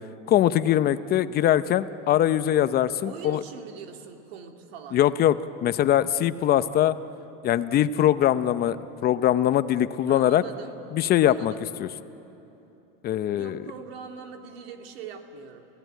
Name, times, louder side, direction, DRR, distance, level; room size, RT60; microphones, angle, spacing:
voice 1, 0.3-3.4 4.9-5.3 5.6-7.0 7.4-8.8 9.0-10.4 10.9-11.5 11.8-11.9 13.0-13.6, left 11 dB, 30° left, 13 dB, 0.7 m, -22 dB
voice 2, 3.0-5.0 10.1-10.8 11.2-11.6 13.4-15.7, right 7 dB, 90° right, 4 dB, 2.4 m, -42 dB
28.5 x 17.0 x 9.3 m, 3.0 s
supercardioid pair, 140°, 29 cm